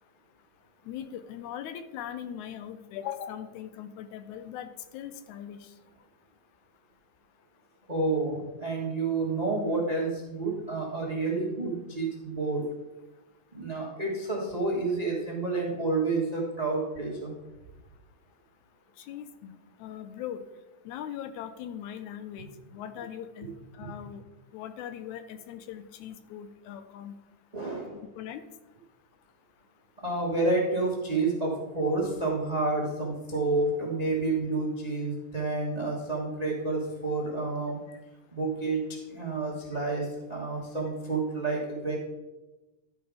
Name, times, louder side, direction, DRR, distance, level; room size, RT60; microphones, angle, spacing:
voice 1, 0.9-5.7 19.0-20.4 20.9-24.2 24.5-27.1 28.2-28.5 37.9-38.0, left 10 dB, 80° left, 11 dB, 1.9 m, -40 dB
voice 2, 7.9-12.6 13.5-17.3 23.8-23.9 27.5-28.0 30.0-37.8 38.3-38.8 39.1-41.9, right 3 dB, 45° right, -2 dB, 0.4 m, -29 dB
12.0 x 5.2 x 4.8 m, 1.1 s
omnidirectional pair, 3.5 m